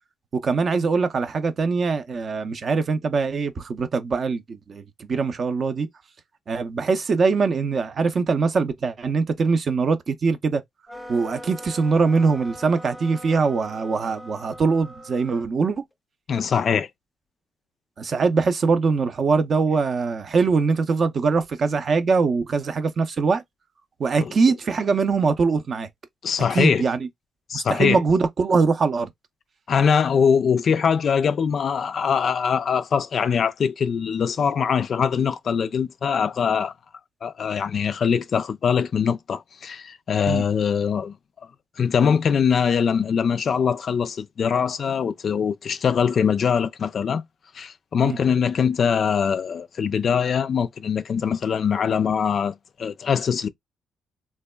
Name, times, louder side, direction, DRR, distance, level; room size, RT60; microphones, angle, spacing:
voice 1, 0.4-5.9 6.5-10.6 11.1-15.8 18.0-23.4 24.0-25.9 26.5-27.1 27.5-29.1 40.3-40.4 48.0-48.2, right 4 dB, 45° right, 0.5 m, -22 dB
sound 1, 10.9-15.5, equal, ahead, 0.6 m, -41 dB
voice 2, 16.3-16.9 24.2-24.3 26.2-26.8 27.5-28.0 29.7-36.7 37.2-41.1 41.8-47.2 47.5-53.5, left 7 dB, 55° left, 0.3 m, -22 dB
3.3 x 2.2 x 2.2 m
cardioid pair, 90°, 0 cm